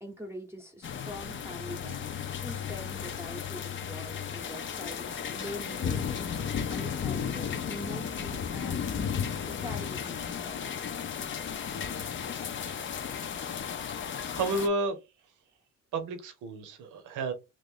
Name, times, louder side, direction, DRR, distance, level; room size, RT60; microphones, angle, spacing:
voice 1, 0.0-8.9 9.6-10.7, equal, 10° right, 0.8 m, -44 dB
sound 1, 0.8-14.7, left 7 dB, 40° left, 0.5 m, -34 dB
voice 2, 14.1-15.0 15.9-17.3, right 2 dB, 90° right, 0.8 m, -32 dB
3.0 x 2.5 x 3.5 m
cardioid pair, 90°, 30 cm